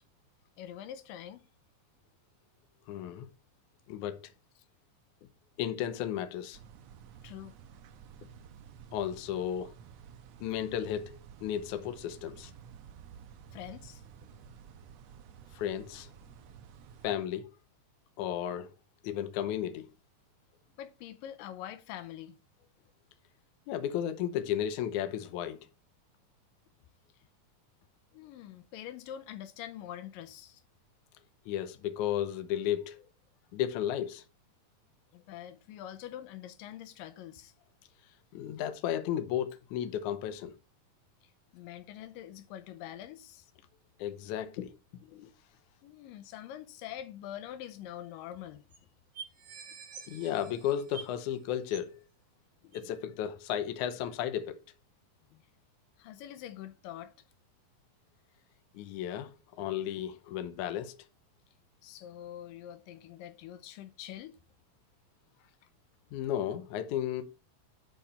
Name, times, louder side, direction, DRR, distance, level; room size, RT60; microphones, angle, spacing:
voice 1, 0.6-1.4 7.2-7.6 13.5-14.0 20.8-22.4 28.1-30.6 35.1-37.5 41.2-43.5 45.8-48.6 55.3-55.4 56.0-57.1 59.6-59.7 61.8-64.4 65.4-65.6, left 11 dB, 90° left, 2.4 m, -45 dB
voice 2, 2.9-3.3 3.9-4.3 5.6-6.6 8.9-9.7 10.4-12.5 15.5-16.1 17.0-17.5 18.2-18.7 19.0-19.9 23.7-25.6 31.5-33.0 33.5-34.2 38.3-40.6 44.0-44.7 45.1-45.3 50.1-52.0 52.7-54.6 58.7-61.0 66.1-67.2, left 10 dB, 75° left, 2.1 m, -34 dB
sound 1, 6.5-17.2, right 8 dB, 80° right, 1.5 m, -52 dB
sound 2, 47.9-48.0 48.2-48.3 48.7-48.8 49.1-51.3 51.7-52.0 52.7-52.8, right 6 dB, 50° right, 2.1 m, -47 dB
10.5 x 4.7 x 4.4 m
omnidirectional pair, 3.9 m